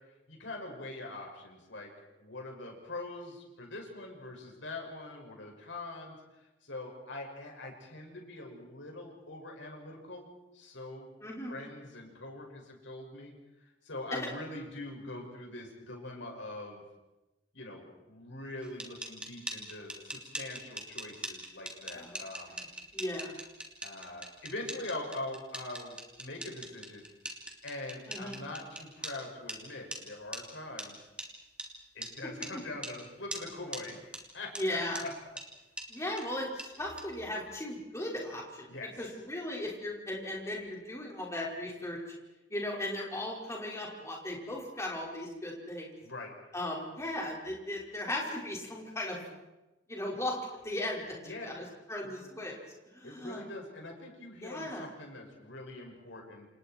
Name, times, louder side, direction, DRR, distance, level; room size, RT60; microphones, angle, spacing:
voice 1, 0.3-1.9 2.2-6.1 6.6-10.3 10.5-11.1 11.5-13.3 13.8-16.8 17.5-22.6 23.8-27.0 27.6-31.0 31.9-34.0 34.3-35.1 38.7-39.1 46.0-46.3 51.2-51.6 52.0-52.3 53.0-56.5, left 2 dB, 75° left, 1 dB, 6.5 m, -43 dB
voice 2, 11.2-11.6 14.1-14.3 21.9-22.7 22.9-23.3 28.1-28.4 34.6-35.0 35.9-38.7 39.0-42.0 42.5-46.0 46.5-49.2 49.9-50.4 50.6-52.5 52.9-53.4 54.4-54.9, left 1 dB, 15° left, -2 dB, 5.3 m, -37 dB
sound 1, 18.6-29.1 29.5-29.6 29.9-30.0 30.3-30.4 30.8-30.9 31.2-31.3 31.6-31.7 32.0-32.1 32.4-32.5 32.8-32.9 33.3-33.4 33.7-33.8 34.1-34.2 34.5-34.6 34.9-35.0 35.4-35.5 35.8-35.9 36.2-36.3 36.6-36.7 37.0-37.1, right 1 dB, 5° right, 3.1 m, -40 dB
28.5 x 28.0 x 4.6 m, 1.0 s
head